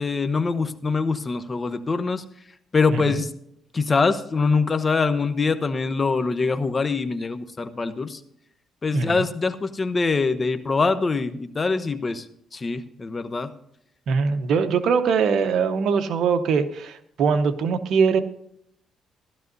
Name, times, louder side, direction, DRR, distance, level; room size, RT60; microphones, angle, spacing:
voice 1, 0.0-2.2 2.7-3.3 3.7-8.2 8.8-12.3 12.5-13.5, left 4 dB, 30° left, 11 dB, 0.9 m, -24 dB
voice 2, 2.9-3.2 8.9-9.2 14.1-18.2, right 5 dB, 70° right, 8 dB, 1.0 m, -22 dB
15.0 x 12.0 x 2.7 m, 0.73 s
cardioid pair, 90°, 0 cm